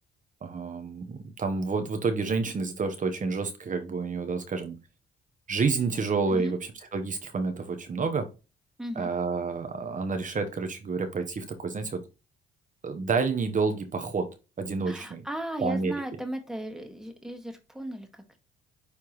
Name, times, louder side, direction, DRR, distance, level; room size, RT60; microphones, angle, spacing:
voice 1, 0.4-4.8 5.5-8.3 9.0-12.0 12.8-15.2 15.6-15.9, right 4 dB, 40° right, 7 dB, 1.0 m, -29 dB
voice 2, 8.8-9.1 14.9-18.4, right 1 dB, ahead, 4 dB, 1.8 m, -36 dB
9.7 x 3.4 x 3.1 m, 0.30 s
cardioid pair, 90°, 20 cm